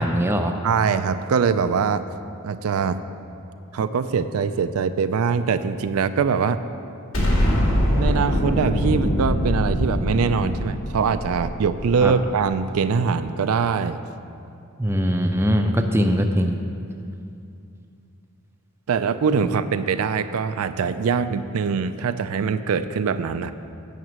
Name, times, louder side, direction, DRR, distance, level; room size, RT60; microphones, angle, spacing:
voice 1, 0.0-0.5 12.0-12.1 14.8-16.6, equal, 10° right, 4 dB, 0.4 m, -21 dB
voice 2, 0.6-2.0 2.4-3.0 3.7-6.6 8.0-14.0 18.9-23.5, right 5 dB, 80° right, 11 dB, 0.4 m, -23 dB
Explosion, 7.1-12.3, equal, 65° left, 2.2 m, -23 dB
9.2 x 5.9 x 7.4 m, 2.6 s
head